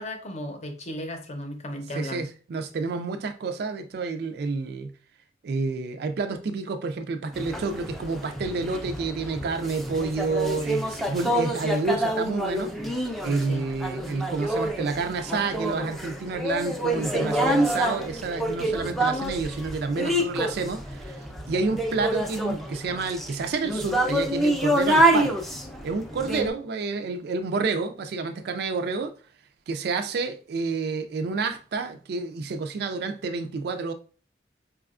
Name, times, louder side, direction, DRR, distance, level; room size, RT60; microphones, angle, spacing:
voice 1, 0.0-2.3 13.5-13.6, left 1 dB, 40° left, 0.7 m, -35 dB
voice 2, 1.9-4.9 5.4-12.7 13.2-25.4 25.8-29.1 29.7-33.9, right 4 dB, 65° right, 0.4 m, -29 dB
sound 1, 7.3-26.5, right 1 dB, ahead, 0.4 m, -27 dB
4.8 x 2.3 x 2.4 m
head